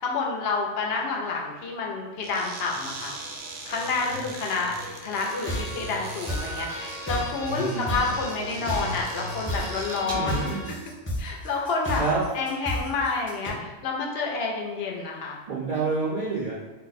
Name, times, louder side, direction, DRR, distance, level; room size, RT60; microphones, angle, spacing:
voice 1, 0.0-3.1 3.7-4.7 5.0-10.5 11.2-12.0 12.3-15.4, left 4 dB, 65° left, -1 dB, 0.8 m, -29 dB
sound 1, 2.2-10.4, right 2 dB, 80° right, 0.9 m, -38 dB
sound 2, 5.1-13.5, equal, 20° left, 0.3 m, -33 dB
voice 2, 7.5-8.0 9.6-9.7 10.0-10.7 11.4-11.6 12.0-12.2 15.5-16.5, right 4 dB, 50° right, -5 dB, 0.5 m, -29 dB
2.6 x 2.1 x 4.0 m, 1.2 s
omnidirectional pair, 1.2 m